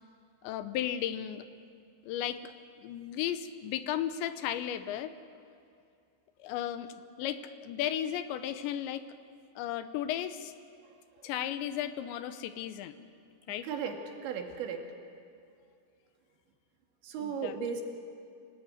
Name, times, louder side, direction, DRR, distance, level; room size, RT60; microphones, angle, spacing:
voice 1, 0.4-1.4 2.0-2.5 2.8-5.1 6.4-9.1 9.6-10.5 11.2-13.0 13.5-13.7 17.2-17.5, left 11 dB, 80° left, 11 dB, 3.2 m, -35 dB
voice 2, 10.8-11.3 13.6-14.9 17.0-17.8, right 6 dB, 85° right, 3 dB, 4.5 m, -36 dB
25.5 x 18.5 x 9.7 m, 2.4 s
omnidirectional pair, 5.1 m